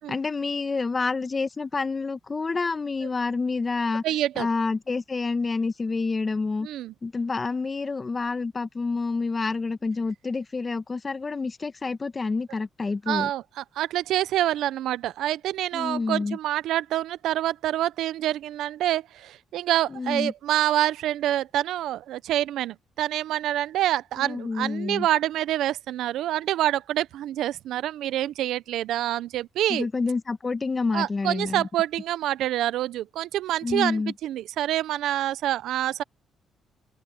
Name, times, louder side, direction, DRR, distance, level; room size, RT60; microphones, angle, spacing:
voice 1, 0.1-4.0 4.4-6.7 7.0-13.3 15.7-16.4 19.9-20.3 24.2-25.1 29.7-31.7 33.6-34.1, left 4 dB, 30° left, 1.4 m, -28 dB
voice 2, 4.0-4.5 6.6-6.9 13.1-29.9 30.9-36.0, right 13 dB, 80° right, 0.6 m, -27 dB
cardioid pair, 90°, 0 cm